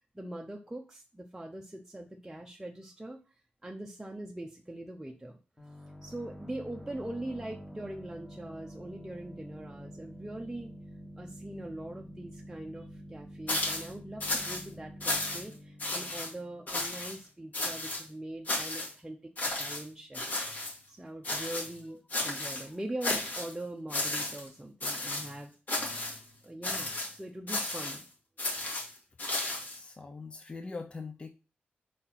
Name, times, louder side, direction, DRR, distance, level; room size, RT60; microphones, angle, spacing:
voice 1, 0.1-3.2 3.6-5.4 6.0-10.7 11.2-19.3 19.6-20.4 20.9-25.5 26.1-26.2 26.4-28.0, right 1 dB, 10° right, 0 dB, 0.7 m, -42 dB
sound 1, 5.6-17.0, equal, 15° left, 1.6 m, -48 dB
sound 2, 13.5-13.9 14.2-14.6 15.0-15.5 15.8-16.3 16.7-17.2 17.5-18.0 18.5-18.9 19.4-19.8 20.1-20.8 21.2-21.8 22.1-22.7 23.0-23.5 23.9-24.5 24.8-25.3 25.7-26.2 26.6-27.1 27.5-28.0 28.4-29.8, left 2 dB, 55° left, 2.6 m, -33 dB
voice 2, 29.7-31.3, left 4 dB, 30° left, 5 dB, 0.6 m, -42 dB
5.0 x 4.2 x 5.7 m, 0.34 s
wide cardioid pair, 130°, 4 cm